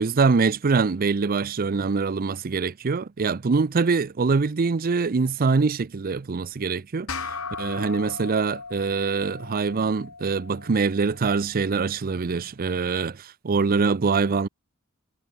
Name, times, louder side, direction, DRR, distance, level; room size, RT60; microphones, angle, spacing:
voice 1, 0.0-14.5, right 4 dB, 40° right, 0.5 m, -24 dB
sound 1, 7.1-11.9, left 4 dB, 70° left, 4.2 m, -38 dB
head